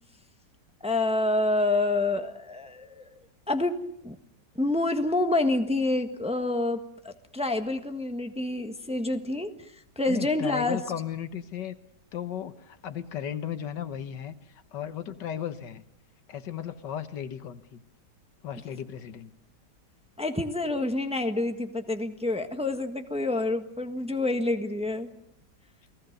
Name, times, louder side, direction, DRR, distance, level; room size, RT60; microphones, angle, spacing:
voice 1, 0.8-3.1 3.5-3.8 4.0-4.2 4.5-10.8 20.2-25.1, left 2 dB, 5° right, 6 dB, 1.2 m, -28 dB
voice 2, 10.1-11.8 12.1-14.3 14.7-15.8 16.3-17.8 18.4-19.3, left 9 dB, 80° left, 11 dB, 1.8 m, -35 dB
29.5 x 19.5 x 6.6 m, 0.71 s
omnidirectional pair, 1.9 m